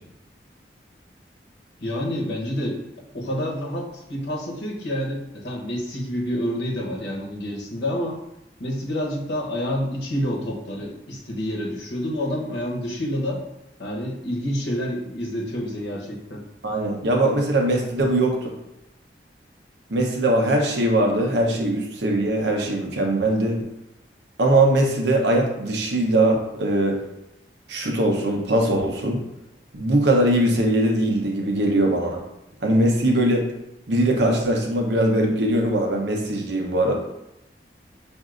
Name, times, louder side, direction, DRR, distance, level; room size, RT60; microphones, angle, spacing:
voice 1, 1.8-2.8 3.1-8.2 8.6-13.4 13.8-16.4, equal, 85° left, -2 dB, 1.0 m, -28 dB
voice 2, 16.6-18.5 19.9-23.7 24.4-27.0 27.7-29.2 29.7-32.2 32.6-33.4 33.9-36.9, right 1 dB, 85° right, 1 dB, 0.8 m, -21 dB
6.1 x 2.6 x 2.5 m, 0.86 s
head